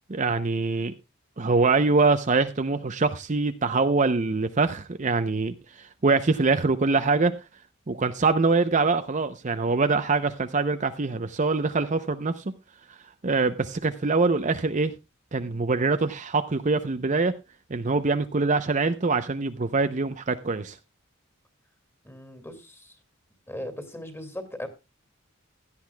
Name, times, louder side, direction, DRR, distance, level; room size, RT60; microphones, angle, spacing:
voice 1, 0.1-0.9 1.4-7.3 7.9-12.5 13.2-14.9 15.3-17.3 17.7-20.8, right 3 dB, 35° right, 9 dB, 0.6 m, -24 dB
voice 2, 22.0-23.0 23.5-24.7, left 1 dB, 10° left, 8 dB, 2.3 m, -38 dB
16.5 x 11.5 x 2.3 m, 0.26 s
head